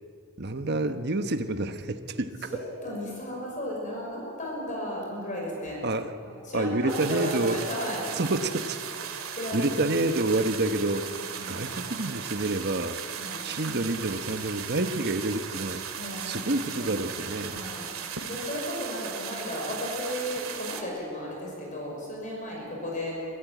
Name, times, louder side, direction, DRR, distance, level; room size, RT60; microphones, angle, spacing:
voice 1, 0.4-2.6 5.8-6.2 6.5-7.7 8.1-13.0 13.4-15.8 16.2-17.6, right 2 dB, 50° right, 9 dB, 1.2 m, -28 dB
voice 2, 2.5-5.8 6.2-8.1 9.3-9.7 11.1-11.6 13.2-13.5 15.9-16.4 16.8-17.0 17.5-17.9 18.3-23.2, left 1 dB, 35° left, -2 dB, 5.9 m, -35 dB
sound 1, 6.9-20.8, right 7 dB, 70° right, 2.3 m, -37 dB
25.0 x 14.5 x 9.4 m, 2.4 s
head